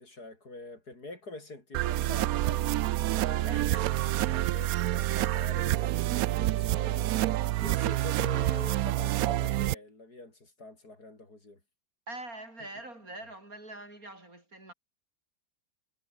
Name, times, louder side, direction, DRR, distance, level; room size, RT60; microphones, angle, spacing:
voice 1, 0.0-2.8 3.2-11.6 12.6-12.7, left 2 dB, 55° left, 5.8 m, -45 dB
sound 1, 1.7-9.7, right 15 dB, 75° right, 0.8 m, -28 dB
voice 2, 3.5-3.9 12.1-14.7, right 2 dB, 50° right, 6.8 m, -44 dB
omnidirectional pair, 2.0 m